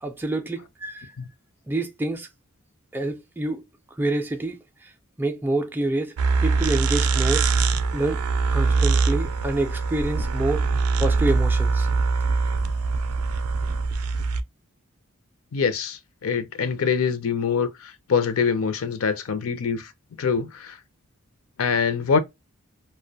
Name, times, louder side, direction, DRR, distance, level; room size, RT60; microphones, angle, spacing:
voice 1, 0.0-1.1 1.7-2.3 2.9-3.6 3.9-4.9 5.2-6.2 6.4-8.2 8.5-10.7 11.0-11.9, right 2 dB, 10° right, 0.3 m, -27 dB
sound 1, 6.2-14.4, right 4 dB, 90° right, 0.4 m, -23 dB
voice 2, 15.5-19.9 20.2-20.8 21.6-22.2, left 6 dB, 70° left, 0.5 m, -24 dB
2.4 x 2.1 x 2.6 m
head